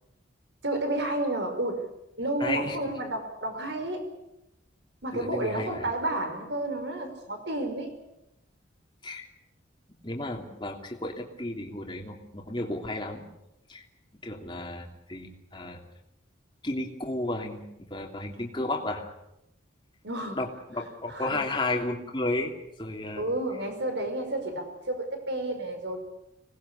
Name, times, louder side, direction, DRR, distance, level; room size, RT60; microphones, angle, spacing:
voice 1, 0.6-1.9 2.2-4.1 5.0-8.0 20.0-20.4 21.1-21.4 23.2-26.0, right 1 dB, 65° right, 7 dB, 5.3 m, -31 dB
voice 2, 2.4-2.9 5.1-5.8 9.0-9.3 10.0-13.3 13.7-13.9 14.1-15.8 16.6-19.1 20.3-22.5 22.8-23.3, left 2 dB, 25° left, 1 dB, 3.1 m, -33 dB
26.0 x 19.5 x 8.4 m, 0.86 s
head